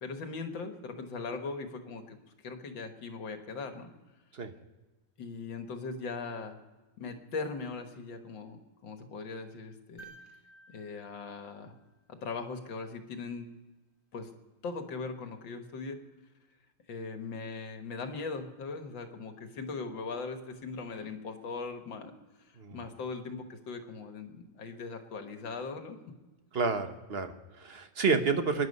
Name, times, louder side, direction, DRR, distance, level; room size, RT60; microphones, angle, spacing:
voice 1, 0.0-3.9 5.2-6.6 7.0-10.1 10.7-11.7 12.1-13.5 14.1-14.3 14.6-16.0 16.9-22.1 22.5-26.0, left 4 dB, 80° left, 6 dB, 2.2 m, -40 dB
sound 1, 10.0-12.3 14.3-14.4, right 3 dB, 35° left, 3.3 m, -55 dB
voice 2, 22.6-22.9 26.5-28.7, right 4 dB, 40° right, 7 dB, 1.1 m, -30 dB
23.5 x 11.0 x 5.4 m, 1.2 s
omnidirectional pair, 2.0 m